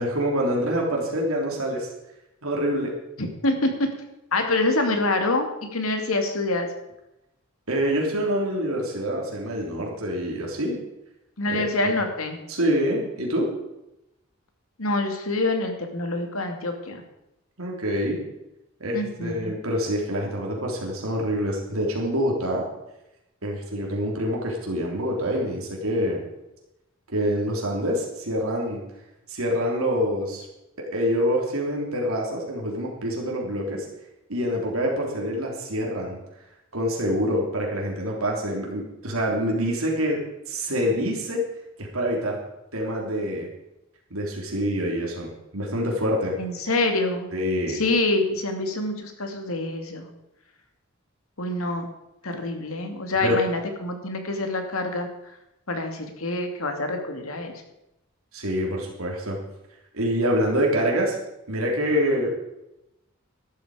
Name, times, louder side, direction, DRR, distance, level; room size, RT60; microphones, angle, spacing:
voice 1, 0.0-1.9 2.4-2.9 7.7-10.8 11.5-11.6 12.5-13.5 17.6-18.2 18.8-22.6 23.4-26.2 27.1-28.8 29.3-30.5 30.8-33.9 34.3-36.2 36.7-41.5 41.8-42.4 42.7-43.5 44.1-46.4 47.3-47.8 53.2-53.4 58.3-59.4 59.9-61.1 61.5-62.3, equal, 85° right, -1 dB, 3.5 m, -26 dB
voice 2, 3.2-3.9 4.3-6.7 11.4-12.4 14.8-17.0 18.9-19.5 46.4-47.3 47.7-50.1 51.4-51.9 52.2-55.1 55.7-57.5, left 2 dB, 85° left, 5 dB, 2.4 m, -26 dB
13.0 x 12.0 x 5.0 m, 0.90 s
head